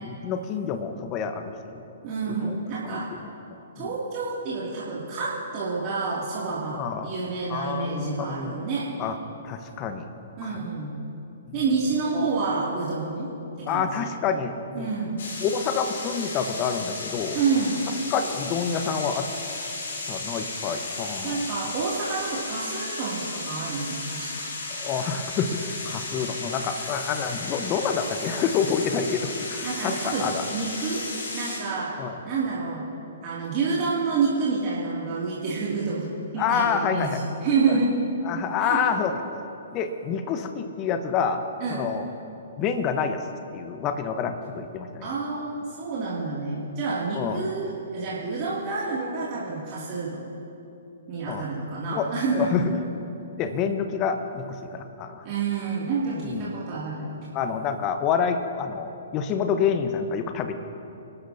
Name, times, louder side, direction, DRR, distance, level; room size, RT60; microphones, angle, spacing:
voice 1, 0.0-1.8 2.3-3.9 6.7-7.1 7.5-8.5 9.0-9.1 9.4-10.1 10.4-10.7 11.5-11.7 13.7-14.9 15.4-17.4 18.1-19.3 20.1-21.5 24.7-30.5 32.0-32.2 36.4-37.2 37.6-37.8 38.2-39.2 39.7-41.4 41.7-42.1 42.6-43.3 43.5-45.1 47.1-47.4 51.3-51.5 51.9-52.1 52.3-52.6 53.4-55.2 56.2-56.5 57.3-60.6, left 6 dB, 30° left, 7 dB, 1.2 m, -28 dB
voice 2, 2.0-3.1 3.7-9.0 10.4-10.9 11.5-13.3 13.6-14.1 14.7-15.2 17.3-17.9 21.2-24.5 29.6-31.0 31.3-31.9 32.2-32.8 33.2-37.9 38.3-38.8 41.6-41.9 45.0-50.3 51.1-52.7 55.2-57.1, right 4 dB, 35° right, -8 dB, 2.7 m, -28 dB
sound 1, 15.2-31.6, left 3 dB, 60° left, 3.6 m, -34 dB
26.0 x 13.0 x 2.9 m, 2.9 s
figure-of-eight pair, 120°, 0 cm